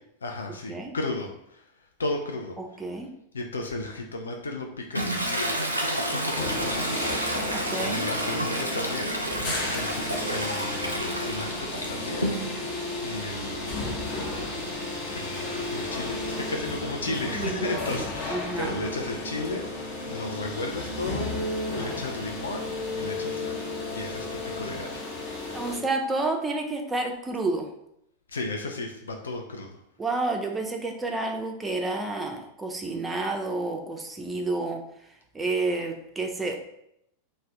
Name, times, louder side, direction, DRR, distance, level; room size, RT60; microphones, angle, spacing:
voice 1, 0.2-2.6 3.3-5.5 5.9-7.2 7.8-9.2 9.7-12.6 13.0-13.8 15.1-25.1 28.3-29.8, left 2 dB, 70° left, 2 dB, 0.3 m, -34 dB
Toilet flush, 4.9-12.8 13.2-17.5, right 1 dB, 85° right, 0.4 m, -32 dB
sound 1, 6.3-25.8, left 2 dB, 45° left, 0.7 m, -33 dB
voice 2, 7.5-8.1 17.3-18.0 18.3-18.8 25.5-27.7 30.0-34.8 35.3-36.6, right 2 dB, 10° right, 2 dB, 0.4 m, -30 dB
2.5 x 2.0 x 3.5 m, 0.77 s
figure-of-eight pair, 90°, 0 cm